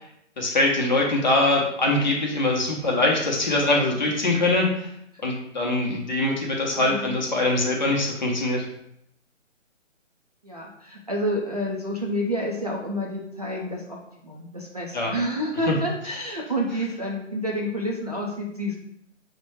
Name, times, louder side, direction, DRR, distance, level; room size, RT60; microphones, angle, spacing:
voice 1, 0.4-4.7 5.2-8.7 14.9-15.1 15.7-15.8, left 2 dB, 35° left, -1 dB, 0.7 m, -23 dB
voice 2, 6.8-7.1 10.4-14.0 14.2-18.8, equal, 30° right, -4 dB, 0.4 m, -29 dB
5.8 x 2.1 x 3.1 m, 0.75 s
figure-of-eight pair, 150°, 38 cm